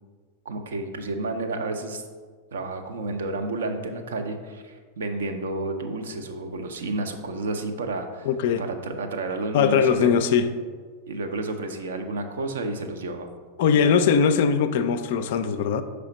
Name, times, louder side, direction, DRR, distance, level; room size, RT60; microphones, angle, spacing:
voice 1, 0.4-2.0 2.5-8.3 8.6-10.1 11.1-13.3 13.7-13.9, right 2 dB, 65° right, 5 dB, 0.6 m, -31 dB
voice 2, 8.3-8.6 9.5-10.5 13.6-15.8, left 6 dB, 50° left, 10 dB, 0.3 m, -20 dB
5.6 x 3.3 x 5.0 m, 1.5 s
figure-of-eight pair, 90°, 0 cm